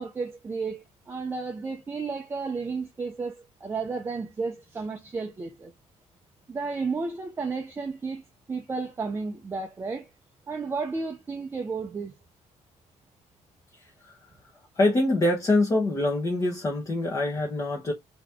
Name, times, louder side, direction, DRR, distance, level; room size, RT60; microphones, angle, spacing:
voice 1, 0.0-5.7 6.5-10.1 10.5-12.1, right 4 dB, 20° right, 0.6 m, -33 dB
voice 2, 14.7-17.9, left 2 dB, 25° left, 1.1 m, -24 dB
4.0 x 3.0 x 3.5 m
cardioid pair, 155°, 13 cm